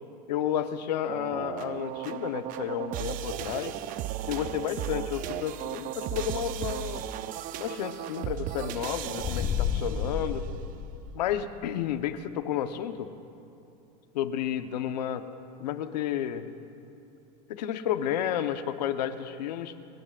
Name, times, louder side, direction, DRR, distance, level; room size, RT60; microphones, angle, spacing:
voice 1, 0.3-3.8 4.3-7.0 7.6-10.5 11.1-13.1 14.1-15.2 15.6-16.5 17.5-19.7, left 10 dB, 90° left, 9 dB, 1.0 m, -31 dB
sound 1, 1.1-10.3, right 12 dB, 40° right, 0.6 m, -36 dB
sound 2, 9.2-11.5, left 7 dB, 30° left, 1.3 m, -31 dB
29.0 x 17.5 x 2.5 m, 2.7 s
supercardioid pair, 130°, 21 cm